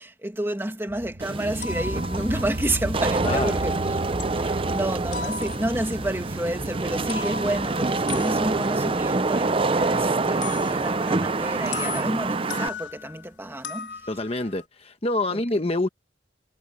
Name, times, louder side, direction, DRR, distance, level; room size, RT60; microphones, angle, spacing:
voice 1, 0.0-4.0 4.3-14.0 15.3-15.4, right 1 dB, 15° right, 2.4 m, -30 dB
sound 1, 0.9-12.4, right 1 dB, 55° right, 1.4 m, -36 dB
Wind / Rain, 1.2-12.7, right 3 dB, 30° right, 0.6 m, -26 dB
sound 2, 1.6-3.9 4.2-4.7 5.1-6.0 6.9-13.3 13.6-14.6, left 5 dB, 80° left, 3.8 m, -38 dB
voice 2, 3.2-3.6 14.1-15.9, left 2 dB, 35° left, 1.3 m, -26 dB
head